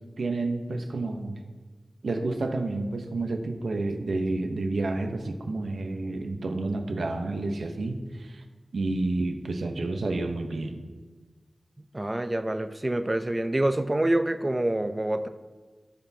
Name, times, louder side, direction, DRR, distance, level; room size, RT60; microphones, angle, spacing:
voice 1, 0.2-1.4 2.0-8.4 8.7-10.8, right 2 dB, 85° right, 5 dB, 0.8 m, -30 dB
voice 2, 11.9-15.3, right 1 dB, 30° right, 9 dB, 0.6 m, -26 dB
17.0 x 6.0 x 2.8 m, 1.4 s
cardioid pair, 45°, 0 cm